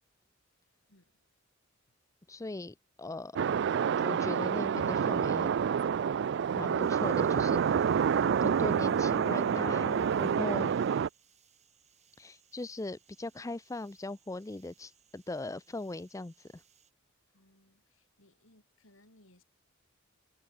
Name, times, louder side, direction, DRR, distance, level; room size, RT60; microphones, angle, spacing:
voice 1, 0.9-1.2 17.3-19.4, left 1 dB, 70° left, 5.7 m, -64 dB
voice 2, 2.3-3.4 4.0-5.5 6.6-7.9 8.4-10.9 12.2-16.6, left 2 dB, 15° left, 0.5 m, -39 dB
sound 1, 3.4-11.1, right 7 dB, 60° right, 0.3 m, -28 dB
sound 2, 6.8-16.9, right 9 dB, 35° right, 3.6 m, -67 dB
head